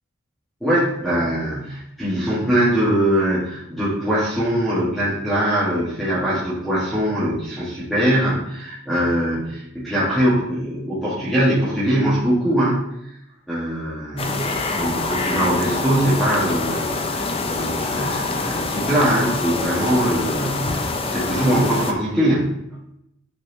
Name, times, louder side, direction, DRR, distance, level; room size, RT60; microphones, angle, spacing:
voice 1, 0.6-12.8 13.5-20.8 21.1-22.5, right 1 dB, ahead, -10 dB, 2.1 m, -22 dB
sound 1, 14.2-21.9, left 3 dB, 30° left, 0.6 m, -25 dB
8.6 x 4.7 x 3.2 m, 0.77 s
head